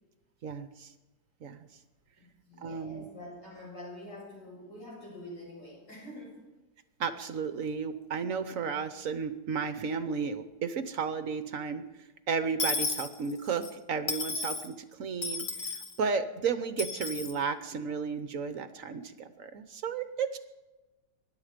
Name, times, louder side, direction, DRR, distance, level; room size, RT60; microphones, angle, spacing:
voice 1, 0.4-0.9 1.4-1.7 2.6-3.1 7.0-11.8 12.3-20.4, right 5 dB, 55° right, 11 dB, 1.1 m, -33 dB
voice 2, 2.2-6.4, left 1 dB, 70° left, -4 dB, 7.8 m, -46 dB
Dishes pots and pans / Coin (dropping), 12.6-13.7 14.1-14.7 15.2-15.9 16.8-17.3, left 3 dB, 45° left, 2.0 m, -33 dB
24.5 x 11.5 x 5.1 m, 1.1 s
omnidirectional pair, 1.9 m